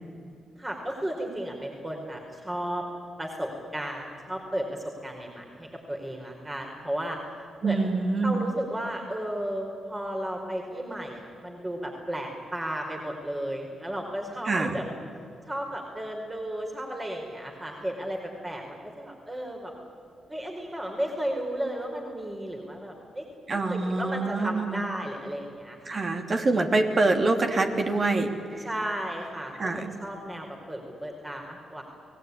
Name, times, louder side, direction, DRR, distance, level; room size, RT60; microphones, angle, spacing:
voice 1, 0.6-2.8 3.2-7.2 7.6-7.9 8.2-14.9 15.5-19.7 20.3-23.2 23.5-26.0 28.6-31.8, right 1 dB, 25° right, 1 dB, 4.9 m, -34 dB
voice 2, 7.6-8.4 14.5-14.7 23.5-24.8 25.9-28.3 28.5-28.7 29.6-29.9, right 3 dB, 50° right, 5 dB, 3.2 m, -25 dB
28.5 x 19.0 x 9.8 m, 2.6 s
supercardioid pair, 50°, 0 cm